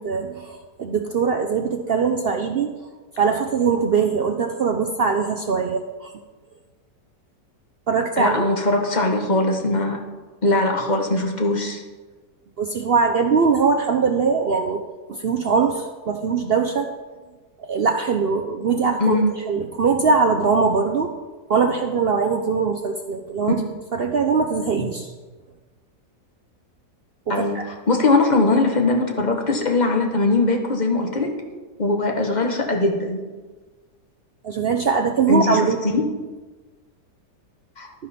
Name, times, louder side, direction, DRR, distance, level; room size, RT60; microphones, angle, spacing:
voice 1, 0.0-2.7 3.2-6.1 7.9-8.5 12.6-14.8 15.1-16.9 17.6-19.2 19.5-21.1 21.5-23.6 23.9-25.1 27.3-27.6 34.4-35.8, right 5 dB, 75° right, 4 dB, 0.5 m, -21 dB
voice 2, 8.2-10.0 10.4-11.8 19.0-19.3 27.3-31.3 31.8-33.2 35.3-36.0 37.8-37.9, left 2 dB, 30° left, 3 dB, 1.1 m, -20 dB
11.0 x 10.5 x 4.2 m, 1.3 s
omnidirectional pair, 1.8 m